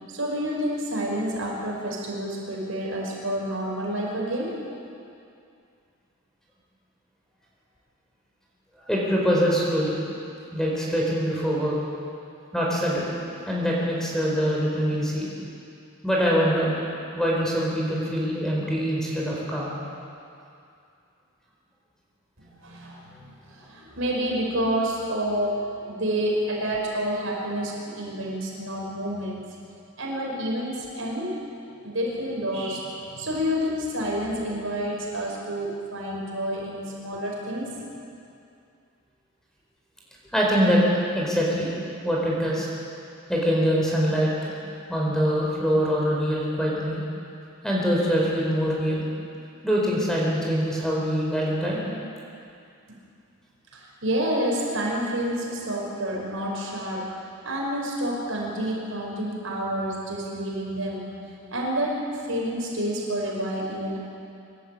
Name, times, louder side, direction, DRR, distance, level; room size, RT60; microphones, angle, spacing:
voice 1, 0.1-4.6 22.4-29.5 30.0-31.4 31.8-37.7 53.7-57.1 57.4-61.2 61.5-64.0, equal, 75° right, -2 dB, 5.4 m, -29 dB
voice 2, 8.8-10.0 10.5-11.8 12.5-13.1 13.5-15.3 16.0-16.7 17.1-19.7 40.3-40.8 41.1-41.7 42.0-42.7 43.3-44.5 44.9-47.0 47.6-49.0 49.6-51.8, equal, 5° left, -4 dB, 4.5 m, -24 dB
25.5 x 12.5 x 8.5 m, 2.5 s
head